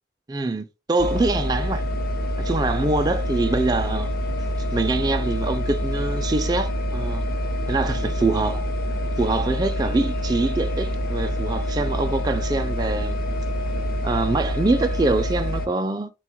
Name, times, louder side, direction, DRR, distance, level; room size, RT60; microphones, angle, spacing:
voice 1, 0.3-1.8 2.4-4.1 4.7-7.2 7.7-8.6 9.2-13.2 14.0-16.1, right 2 dB, 20° right, 0.4 m, -24 dB
sound 1, 1.0-15.7, equal, 55° left, 0.8 m, -26 dB
4.2 x 2.3 x 4.4 m
head